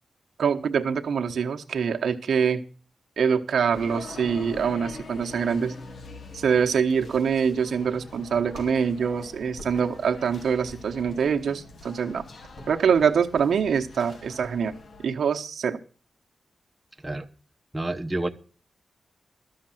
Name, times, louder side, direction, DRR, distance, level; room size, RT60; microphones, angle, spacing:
voice 1, 0.4-2.6 3.2-5.7 6.3-12.2 12.7-15.8, right 6 dB, 80° right, 4 dB, 1.0 m, -24 dB
sound 1, 3.7-15.1, left 3 dB, 60° left, 1.2 m, -44 dB
sound 2, 5.4-13.7, left 1 dB, 85° left, 3.6 m, -51 dB
voice 2, 17.7-18.3, right 2 dB, 10° right, 3 dB, 0.9 m, -28 dB
12.5 x 6.6 x 7.6 m, 0.39 s
wide cardioid pair, 120°, 0 cm